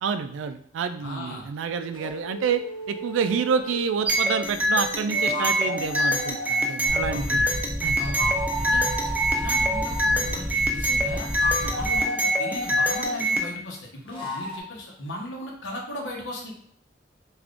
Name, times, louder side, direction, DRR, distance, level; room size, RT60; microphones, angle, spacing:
voice 1, 0.0-2.6 2.9-7.4 7.8-8.0 11.6-11.7, right 6 dB, 90° right, 9 dB, 0.3 m, -28 dB
voice 2, 1.0-1.4 7.1-7.5 8.0-8.9 9.3-11.3 11.7-16.5, left 1 dB, 90° left, -1 dB, 0.8 m, -37 dB
sound 1, 1.9-3.8 4.9-6.7 8.0-10.1 11.2-13.2 14.1-14.6, equal, 30° left, 0.6 m, -32 dB
sound 2, 4.0-13.5, equal, 10° right, 0.3 m, -25 dB
sound 3, 6.9-12.0, equal, 25° right, 1.0 m, -32 dB
3.5 x 2.4 x 2.4 m, 0.63 s
head